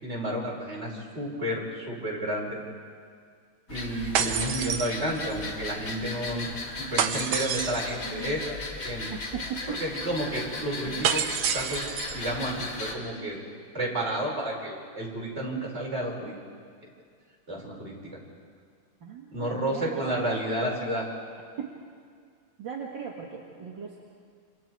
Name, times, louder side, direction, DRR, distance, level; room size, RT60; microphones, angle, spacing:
voice 1, 0.0-2.6 3.7-6.5 6.8-9.1 9.7-11.2 11.5-13.4 13.7-16.3 17.5-18.2 19.3-21.1, right 1 dB, 30° right, -3 dB, 5.3 m, -31 dB
sound 1, 3.7-12.9, left 3 dB, 65° left, 3.1 m, -37 dB
sound 2, 4.1-5.4 7.0-8.0 11.0-12.2, right 8 dB, 75° right, 1.9 m, -28 dB
voice 2, 9.1-9.8 10.9-11.1 19.0-20.4 21.6-21.7 22.6-24.0, right 7 dB, 60° right, -2 dB, 2.5 m, -38 dB
29.5 x 27.5 x 4.7 m, 2.1 s
omnidirectional pair, 2.3 m